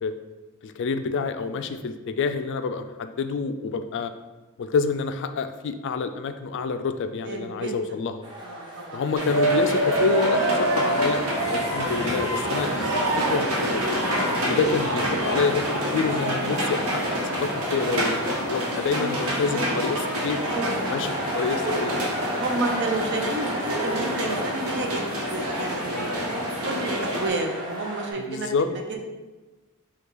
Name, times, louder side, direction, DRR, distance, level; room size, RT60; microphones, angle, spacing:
voice 1, 0.6-4.1 4.6-8.2 8.9-13.8 14.3-20.4 20.8-21.9 28.3-28.7, left 4 dB, 55° left, 9 dB, 0.3 m, -28 dB
voice 2, 7.3-7.8 8.4-9.0 19.5-19.8 20.4-21.1 22.3-26.4 26.6-29.0, right 2 dB, 50° right, 3 dB, 0.6 m, -31 dB
sound 1, 8.2-28.1, equal, 20° right, 1.0 m, -36 dB
sound 2, 9.1-27.3, right 1 dB, 75° right, 1.1 m, -26 dB
5.4 x 2.3 x 3.8 m, 1.2 s
head